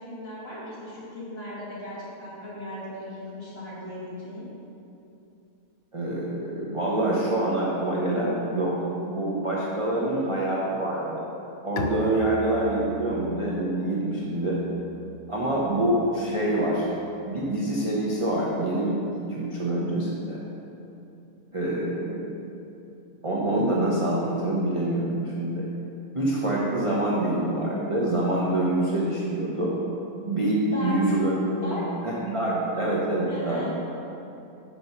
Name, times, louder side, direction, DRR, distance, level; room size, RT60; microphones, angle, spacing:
voice 1, 0.0-4.4 9.9-10.4 30.7-31.1 31.6-31.9 33.3-33.8, equal, 40° left, -8 dB, 2.3 m, -37 dB
voice 2, 5.9-8.8 9.1-11.2 11.6-14.6 15.3-16.9 17.2-20.4 21.5-22.3 23.2-25.6 26.1-29.7 30.3-31.7 32.0-33.6, right 1 dB, 30° right, -6 dB, 0.7 m, -26 dB
Bowed string instrument, 11.8-17.3, left 4 dB, 75° left, 1.0 m, -40 dB
6.1 x 5.4 x 5.9 m, 2.8 s
omnidirectional pair, 1.6 m